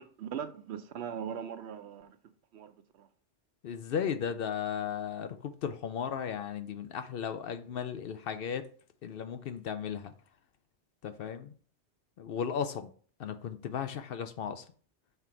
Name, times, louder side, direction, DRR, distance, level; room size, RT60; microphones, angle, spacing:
voice 1, 0.0-2.1 2.5-2.7, right 8 dB, 75° right, 0.9 m, -39 dB
voice 2, 3.6-8.7 9.0-10.1 11.0-11.5 12.2-12.9 13.2-14.7, left 7 dB, 65° left, 0.7 m, -35 dB
5.7 x 3.7 x 4.5 m
omnidirectional pair, 1.2 m